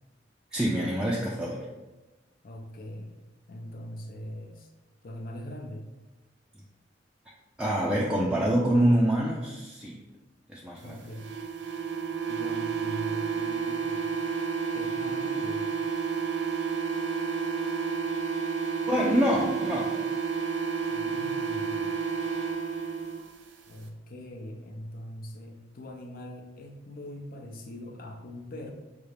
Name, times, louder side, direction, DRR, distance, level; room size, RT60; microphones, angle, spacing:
voice 1, 0.5-1.7 7.6-10.0 10.5-11.0 18.9-19.9, equal, 5° right, -5 dB, 0.4 m, -26 dB
voice 2, 2.4-3.2 3.5-4.7 5.0-5.8 10.8-11.3 12.3-14.1 14.7-15.7 20.9-22.2 23.7-28.7, left 1 dB, 55° left, 2 dB, 0.6 m, -42 dB
sound 1, 11.1-23.2, right 6 dB, 70° right, 0.5 m, -30 dB
5.5 x 2.4 x 3.3 m, 1.1 s
head